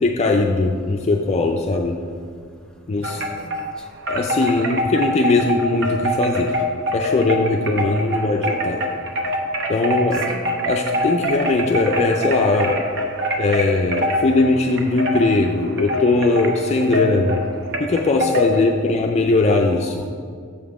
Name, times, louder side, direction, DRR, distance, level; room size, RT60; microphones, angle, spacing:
voice 1, 0.0-2.0 2.9-3.2 4.1-6.5 6.9-8.8 9.7-12.8 13.4-17.4 17.8-20.1, left 3 dB, 30° left, 2 dB, 0.4 m, -20 dB
voice 2, 3.0-3.7 10.1-10.5 19.1-20.1, left 1 dB, 5° left, 2 dB, 0.7 m, -43 dB
Wind chime, 3.0-3.7 4.1-18.6, equal, 60° right, 0.8 m, -24 dB
7.0 x 5.4 x 4.8 m, 2.2 s
head